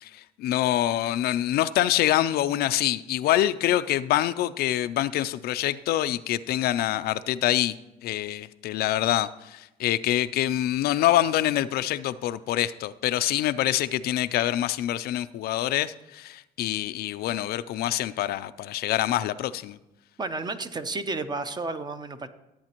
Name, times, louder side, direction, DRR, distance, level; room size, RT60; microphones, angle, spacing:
voice 1, 0.0-7.7 8.0-19.8, left 13 dB, 70° left, 14 dB, 0.4 m, -25 dB
voice 2, 20.2-22.3, right 3 dB, 25° right, 10 dB, 0.7 m, -32 dB
13.5 x 8.5 x 2.9 m, 0.98 s
cardioid pair, 110°, 17 cm